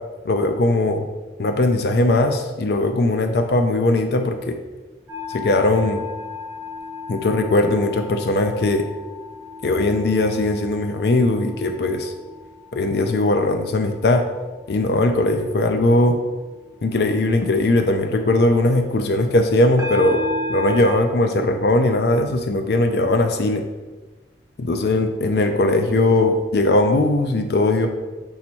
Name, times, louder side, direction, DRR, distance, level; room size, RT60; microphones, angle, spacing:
voice 1, 0.3-1.0 1.4-4.6 5.3-6.1 7.1-8.9 9.6-12.1 12.7-14.2 14.7-16.2 16.8-20.2 20.5-23.6 24.6-27.9, left 2 dB, 60° left, 6 dB, 0.4 m, -19 dB
sound 1, 5.1-13.4 13.8-14.2 19.8-20.9, left 2 dB, 20° right, 1.1 m, -33 dB
5.5 x 4.2 x 4.5 m, 1.2 s
head